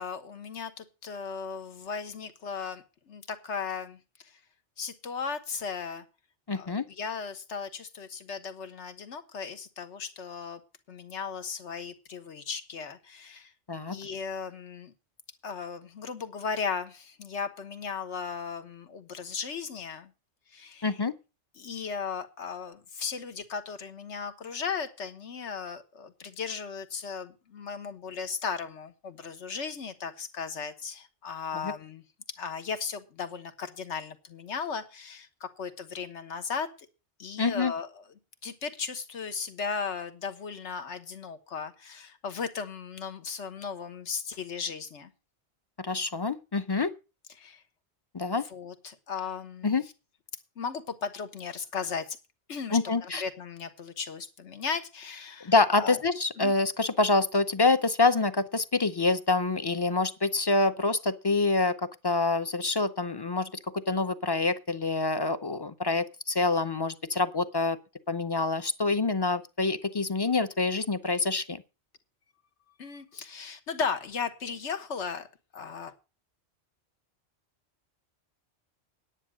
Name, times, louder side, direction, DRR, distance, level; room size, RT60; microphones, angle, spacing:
voice 1, 0.0-4.3 4.8-6.0 6.5-10.6 10.9-13.5 13.9-14.9 15.4-20.1 20.5-21.0 21.6-32.0 32.4-36.7 37.2-38.0 38.4-45.1 47.4-47.6 48.4-49.8 50.6-52.2 52.5-56.0 56.4-56.5 72.8-75.3 75.5-75.9, left 5 dB, 80° left, 10 dB, 1.5 m, -36 dB
voice 2, 6.5-6.9 13.7-14.0 20.8-21.1 31.5-31.7 37.4-37.7 45.8-46.9 48.1-48.4 49.6-49.8 52.7-53.2 55.4-61.7 62.0-67.8 68.1-71.6, left 3 dB, 30° left, 12 dB, 0.5 m, -26 dB
10.0 x 9.4 x 6.1 m, 0.31 s
omnidirectional pair, 1.2 m